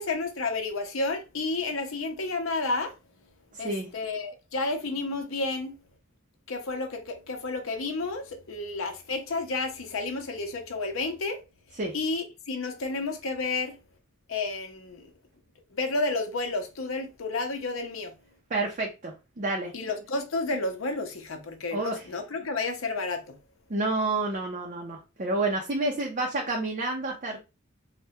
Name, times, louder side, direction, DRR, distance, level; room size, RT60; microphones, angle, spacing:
voice 1, 0.0-2.9 3.6-5.8 6.5-11.4 11.9-13.8 14.3-15.1 15.7-18.1 19.7-23.4, left 3 dB, 80° left, 0.7 m, -31 dB
voice 2, 3.5-3.9 11.8-11.9 18.5-19.7 21.7-22.1 23.7-27.4, right 2 dB, 40° right, 0.5 m, -29 dB
3.4 x 2.1 x 2.7 m
head